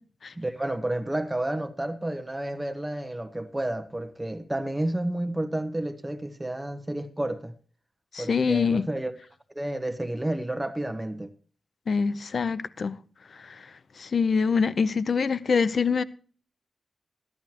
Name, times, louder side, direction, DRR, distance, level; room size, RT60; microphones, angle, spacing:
voice 1, 0.4-7.5 8.2-9.1 9.5-11.3, right 1 dB, 15° right, 1.3 m, -30 dB
voice 2, 8.1-8.9 11.9-13.0 13.3-13.7 14.0-16.0, left 5 dB, 60° left, 0.7 m, -25 dB
14.0 x 12.5 x 3.0 m
wide cardioid pair, 120°, 0 cm